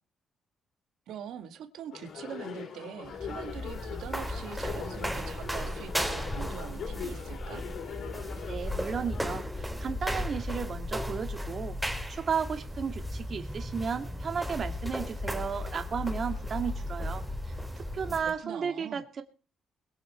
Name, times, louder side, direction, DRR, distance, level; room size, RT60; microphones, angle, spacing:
voice 1, 1.1-7.7 17.9-19.0, right 9 dB, 80° right, 7 dB, 1.9 m, -43 dB
sound 1, 1.9-9.3, left 7 dB, 70° left, 3.0 m, -41 dB
sound 2, 3.0-18.3, left 1 dB, ahead, 3.4 m, -35 dB
voice 2, 8.5-11.8 12.1-19.2, right 6 dB, 50° right, 6 dB, 2.1 m, -34 dB
21.5 x 8.1 x 4.5 m, 0.37 s
cardioid pair, 90°, 0 cm